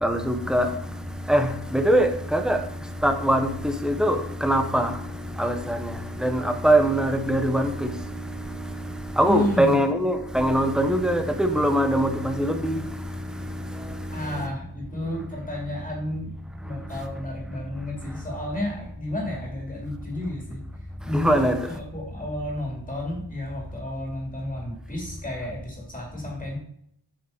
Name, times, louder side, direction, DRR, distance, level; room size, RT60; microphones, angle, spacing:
voice 1, 0.0-14.5 16.6-17.0 21.1-21.7, right 1 dB, ahead, 0.8 m, -24 dB
voice 2, 9.2-9.8 14.1-16.3 16.6-20.6 21.0-26.6, left 1 dB, 20° left, 2.5 m, -32 dB
8.8 x 6.1 x 4.2 m
wide cardioid pair, 135°, 43 cm